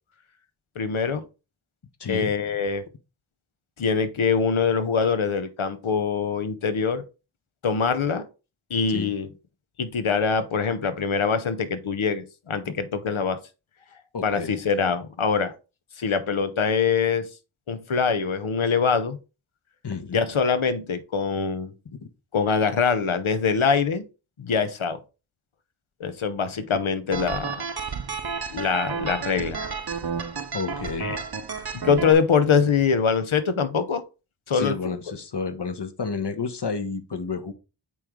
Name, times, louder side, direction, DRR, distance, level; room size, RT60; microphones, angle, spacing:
voice 1, 0.8-1.2 2.1-2.8 3.8-7.0 7.6-8.2 8.7-9.3 9.8-13.4 14.2-15.5 16.0-17.3 17.7-19.2 20.1-21.7 22.3-24.0 24.4-25.0 26.0-27.6 28.5-29.7 31.0-31.2 31.7-34.0 34.5-35.0, left 6 dB, 90° left, 0.8 m, -24 dB
voice 2, 2.0-2.3 8.9-9.1 12.6-12.7 14.1-14.6 19.8-20.2 21.8-22.0 30.5-31.2 34.5-37.5, left 5 dB, 60° left, 1.0 m, -31 dB
sound 1, 27.1-32.1, right 5 dB, 50° right, 0.7 m, -31 dB
8.4 x 3.1 x 3.6 m
wide cardioid pair, 40°, 47 cm